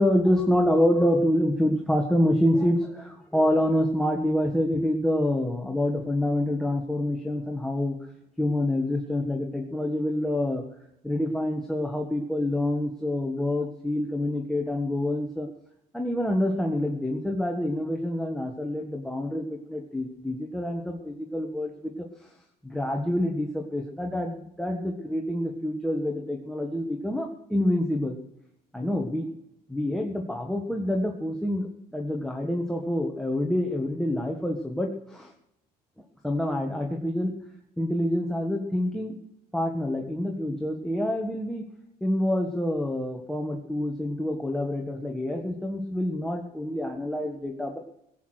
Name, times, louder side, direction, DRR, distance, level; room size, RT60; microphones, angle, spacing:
voice 1, 0.0-8.0 8.4-10.6 11.0-15.5 15.9-22.1 22.6-28.2 28.7-29.3 29.7-35.3 36.2-37.3 37.8-39.1 39.5-41.6 42.0-47.8, left 1 dB, 5° left, 3 dB, 1.5 m, -27 dB
17.5 x 8.4 x 6.4 m, 0.80 s
cardioid pair, 110°, 17 cm